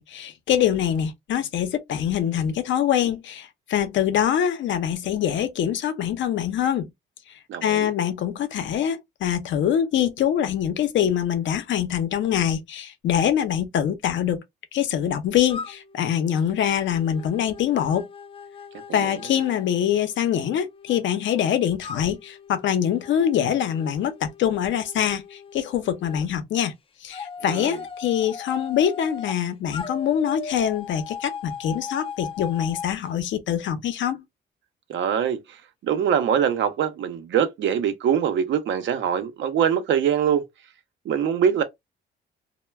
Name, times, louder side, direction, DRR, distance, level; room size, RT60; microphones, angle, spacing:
voice 1, 0.0-6.9 7.6-14.4 14.7-18.1 18.9-26.7 27.0-34.2, left 9 dB, 70° left, 0.6 m, -24 dB
voice 2, 7.5-7.9 18.9-19.2 27.4-27.8 34.9-40.4 41.0-41.6, right 8 dB, 70° right, 0.6 m, -23 dB
sound 1, 15.5-21.0 21.8-26.2 27.1-29.4 29.7-32.9, left 6 dB, 30° left, 0.4 m, -39 dB
2.2 x 2.1 x 3.1 m
cardioid pair, 90°, 20 cm